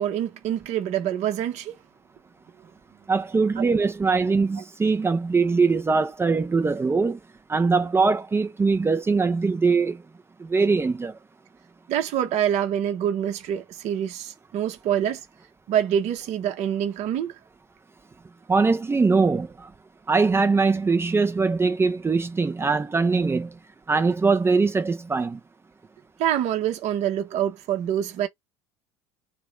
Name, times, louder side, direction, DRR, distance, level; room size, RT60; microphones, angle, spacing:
voice 1, 0.0-1.8 3.6-3.7 11.9-15.2 15.7-17.3 26.2-28.3, right 10 dB, 50° right, 0.8 m, -26 dB
voice 2, 3.1-7.2 7.5-10.0 10.4-11.1 18.5-19.7 20.1-23.6 23.9-25.4, right 4 dB, 15° right, 0.5 m, -22 dB
2.8 x 2.3 x 3.2 m
hypercardioid pair, 75°, 15 cm